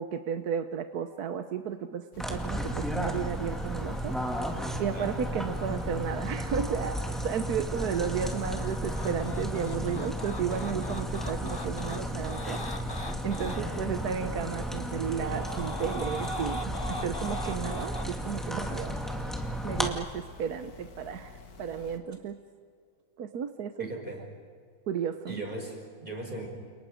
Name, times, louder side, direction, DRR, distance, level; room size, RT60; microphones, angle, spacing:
voice 1, 0.0-4.2 4.8-12.6 12.9-19.0 19.6-22.4 23.2-23.9 24.9-25.4, right 8 dB, 70° right, 8 dB, 1.4 m, -33 dB
sound 1, 2.1-22.0, left 4 dB, 65° left, 2.4 m, -50 dB
sound 2, 2.2-19.9, equal, ahead, 2.1 m, -34 dB
sound 3, 7.8-13.6 15.0-18.1, left 1 dB, 20° left, 0.9 m, -40 dB
voice 2, 13.4-13.9 23.8-24.3 25.3-26.5, right 1 dB, 30° right, 1 dB, 5.3 m, -39 dB
30.0 x 29.0 x 5.1 m, 2.1 s
omnidirectional pair, 1.8 m